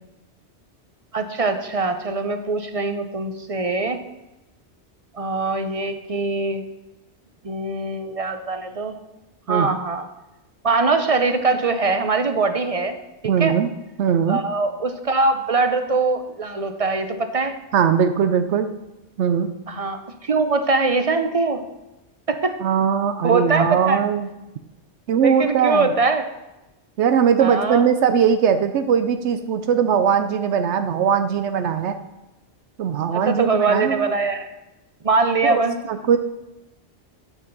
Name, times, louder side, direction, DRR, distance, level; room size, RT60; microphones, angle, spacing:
voice 1, 1.1-4.0 5.1-6.6 7.4-8.9 9.5-10.1 10.6-13.0 13.4-13.6 14.3-17.6 19.7-21.6 22.3-22.6 23.2-24.0 25.1-26.3 27.4-27.9 33.1-34.5 35.0-35.8, right 3 dB, 35° right, 8 dB, 0.7 m, -22 dB
voice 2, 13.2-13.7 14.0-14.4 17.7-18.7 19.2-19.5 22.6-24.3 25.1-25.9 27.0-32.0 32.8-34.1 35.4-35.6 35.9-36.2, right 7 dB, 85° right, 9 dB, 0.9 m, -20 dB
9.2 x 5.7 x 5.3 m, 0.98 s
omnidirectional pair, 1.1 m